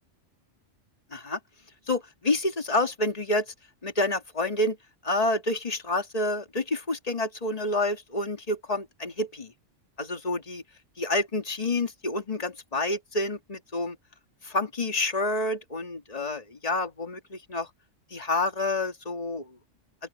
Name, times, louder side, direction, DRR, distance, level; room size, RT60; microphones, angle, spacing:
voice 1, 1.9-3.5 3.8-4.8 5.0-9.5 10.0-10.6 11.0-14.0 14.4-17.7 18.1-19.5, left 2 dB, 30° left, 2.1 m, -28 dB
open air
omnidirectional pair, 1.3 m